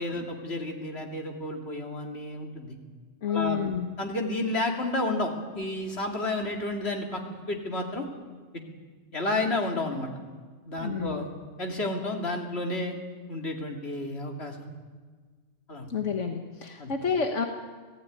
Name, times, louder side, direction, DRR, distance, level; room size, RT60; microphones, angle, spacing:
voice 1, 0.0-2.8 3.3-3.6 4.0-8.1 8.5-8.6 9.1-10.1 10.7-11.3 11.6-12.9 13.3-14.7 15.7-15.9 16.8-16.9, left 2 dB, 60° left, 1 dB, 3.1 m, -31 dB
voice 2, 3.2-3.9 10.8-11.3 15.9-17.5, left 6 dB, 85° left, 3 dB, 1.8 m, -29 dB
25.5 x 16.0 x 9.5 m, 1.5 s
omnidirectional pair, 1.2 m